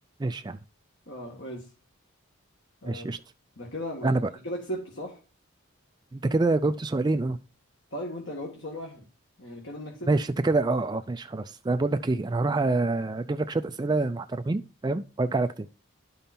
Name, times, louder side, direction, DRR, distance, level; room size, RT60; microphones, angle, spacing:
voice 1, 0.2-0.6 2.8-3.2 4.0-4.3 6.1-7.4 10.1-15.7, right 2 dB, 20° right, 0.3 m, -26 dB
voice 2, 1.1-1.7 2.8-3.1 3.6-4.2 4.4-5.2 7.9-9.0 9.4-10.1, equal, 55° left, 1.8 m, -37 dB
11.5 x 5.3 x 4.3 m
head